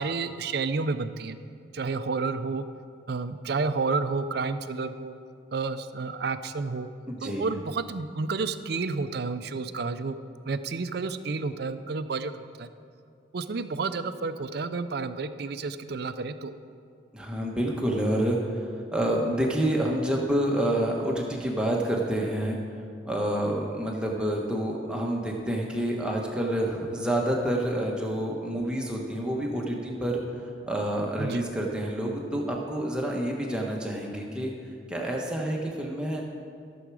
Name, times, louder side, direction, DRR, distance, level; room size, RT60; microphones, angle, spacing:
voice 1, 0.0-1.4 1.7-2.6 3.1-5.1 5.5-6.9 7.2-10.2 10.5-12.7 13.3-16.5 31.2-31.4, right 4 dB, 55° right, 11 dB, 0.5 m, -30 dB
voice 2, 7.1-7.5 17.1-18.4 18.9-22.6 23.0-30.2 30.7-34.5 34.9-36.2, right 1 dB, 5° right, -2 dB, 1.2 m, -28 dB
15.0 x 7.0 x 4.8 m, 2.4 s
head